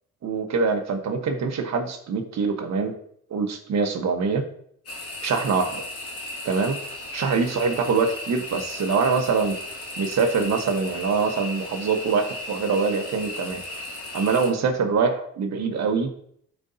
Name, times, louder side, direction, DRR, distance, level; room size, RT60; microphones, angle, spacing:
voice 1, 0.2-2.9 3.3-4.4 5.2-5.8 6.4-6.8 7.1-9.6 10.0-13.6 14.1-16.1, right 5 dB, 60° right, 4 dB, 1.3 m, -24 dB
sound 1, 4.9-14.5, left 1 dB, 50° left, 2.2 m, -36 dB
13.0 x 4.6 x 2.8 m, 0.66 s
cardioid pair, 90°, 30 cm